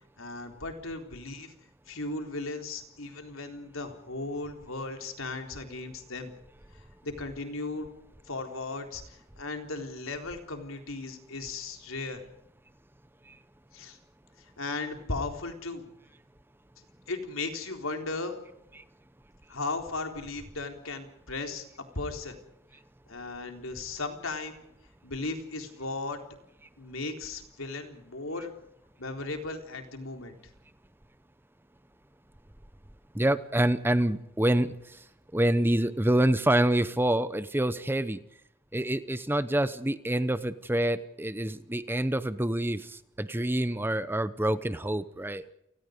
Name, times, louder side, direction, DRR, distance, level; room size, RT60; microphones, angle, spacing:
voice 1, 0.2-1.5 1.9-6.3 6.7-7.9 8.3-12.2 13.7-14.0 14.4-15.9 17.1-18.3 19.5-21.6 22.0-22.4 23.1-24.6 25.0-26.2 26.8-28.5 29.0-30.4, left 3 dB, 75° left, 4 dB, 3.9 m, -36 dB
voice 2, 33.1-34.7 35.3-38.2 38.7-42.9 43.2-45.4, right 1 dB, 10° right, 13 dB, 0.8 m, -26 dB
29.5 x 19.0 x 5.2 m, 0.77 s
head